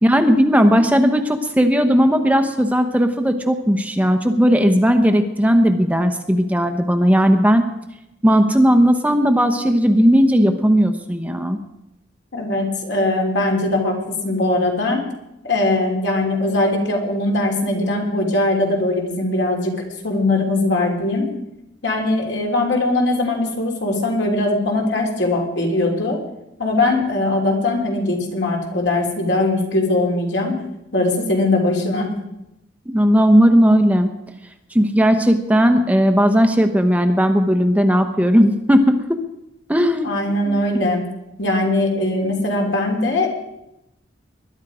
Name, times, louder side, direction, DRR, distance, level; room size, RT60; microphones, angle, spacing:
voice 1, 0.0-7.6 8.2-11.6 32.9-34.1 34.7-39.2 39.7-40.1 40.5-40.6, equal, 10° right, 7 dB, 0.9 m, -16 dB
voice 2, 12.3-15.0 15.4-19.7 20.0-21.3 21.8-26.2 26.6-30.6 30.9-32.1 40.0-41.0 41.4-43.3, left 2 dB, 65° left, 1 dB, 3.4 m, -20 dB
20.5 x 11.5 x 5.0 m, 0.88 s
head